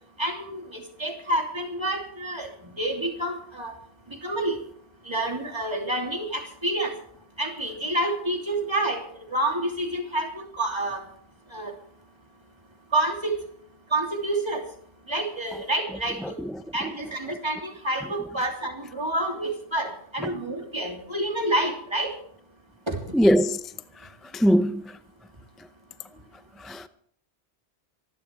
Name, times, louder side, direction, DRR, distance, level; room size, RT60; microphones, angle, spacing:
voice 1, 0.2-3.8 4.1-4.6 5.0-7.0 7.4-11.1 11.5-11.8 12.9-13.4 13.9-14.7 15.0-16.4 16.7-22.2 22.9-23.2, right 1 dB, 25° right, 3.1 m, -28 dB
voice 2, 23.1-23.6 24.3-24.8 26.6-26.9, equal, ahead, 0.4 m, -20 dB
25.5 x 12.0 x 3.5 m
omnidirectional pair, 1.2 m